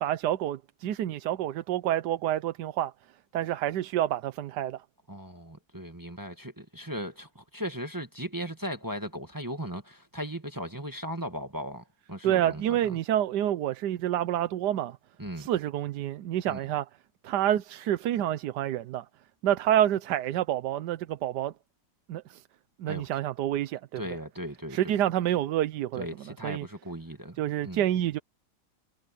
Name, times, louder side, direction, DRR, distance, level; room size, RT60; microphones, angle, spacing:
voice 1, 0.0-2.9 3.3-4.8 12.2-15.0 15.4-16.9 17.2-19.1 19.4-21.5 22.1-22.4 22.8-24.0 24.7-26.1 26.4-26.7 27.4-28.2, right 12 dB, 90° right, 1.3 m, -28 dB
voice 2, 5.1-13.0 15.2-15.5 16.5-16.6 22.9-23.1 23.9-24.8 25.9-27.8, equal, 15° right, 1.4 m, -37 dB
omnidirectional pair, 1.8 m